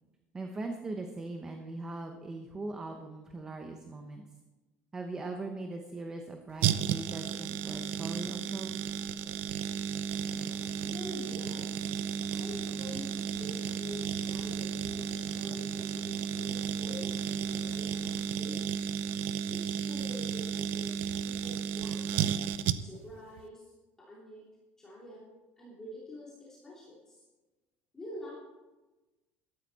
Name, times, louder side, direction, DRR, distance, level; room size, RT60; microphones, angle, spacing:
voice 1, 0.3-4.2 4.9-8.7, right 2 dB, 15° right, 4 dB, 0.9 m, -40 dB
sound 1, 6.6-23.1 23.4-23.5, right 8 dB, 55° right, 0.6 m, -33 dB
sound 2, 10.1-18.2, left 1 dB, 35° left, 5.2 m, -51 dB
voice 2, 10.8-11.9 12.3-18.7 19.5-22.3 22.8-23.7 24.0-24.4 24.8-25.3 25.6-27.2 27.9-28.4, equal, 10° left, -7 dB, 3.2 m, -46 dB
13.5 x 12.5 x 4.1 m, 1.1 s
cardioid pair, 165°, 4 cm